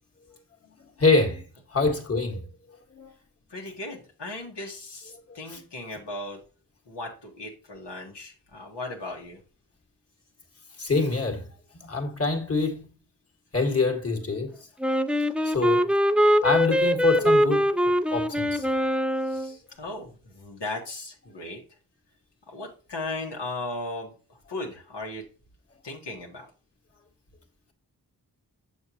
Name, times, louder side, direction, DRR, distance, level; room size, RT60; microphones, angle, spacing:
voice 1, 1.0-1.4 1.7-2.5 2.9-3.1 5.5-5.6 10.8-11.5 11.8-12.9 13.5-14.6 15.4-15.9 16.4-18.7, left 3 dB, 35° left, 1.7 m, -25 dB
voice 2, 3.5-6.4 6.9-9.4 19.2-21.6 22.5-25.2 25.8-26.4, left 2 dB, 85° left, 1.7 m, -37 dB
Wind instrument woodwind instrument, 14.8-19.5, equal, 5° right, 0.3 m, -22 dB
6.7 x 6.4 x 2.9 m
cardioid pair, 55°, 41 cm